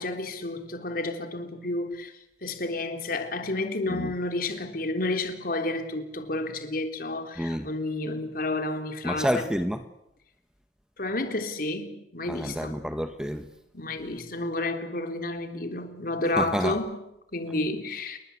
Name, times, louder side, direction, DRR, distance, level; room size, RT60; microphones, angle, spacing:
voice 1, 0.0-2.1 2.4-9.5 11.0-12.8 13.7-17.0 17.3-18.2, left 2 dB, 50° left, 3.6 m, -31 dB
voice 2, 7.4-7.7 9.0-9.8 12.3-13.5 16.4-16.8, equal, 5° right, 1.3 m, -29 dB
29.0 x 22.0 x 8.3 m
head